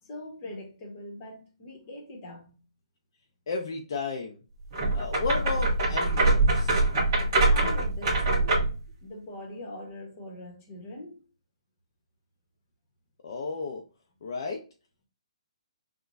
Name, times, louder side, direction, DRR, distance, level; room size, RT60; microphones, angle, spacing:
voice 1, 0.0-2.6 7.4-11.2, left 1 dB, 20° left, 1.0 m, -42 dB
voice 2, 3.5-4.4 4.9-6.8 13.2-13.8 14.2-14.6, left 4 dB, 45° left, 0.5 m, -33 dB
sound 1, 4.7-8.8, right 2 dB, 25° right, 1.2 m, -24 dB
5.8 x 2.2 x 2.5 m
hypercardioid pair, 170°, 3 cm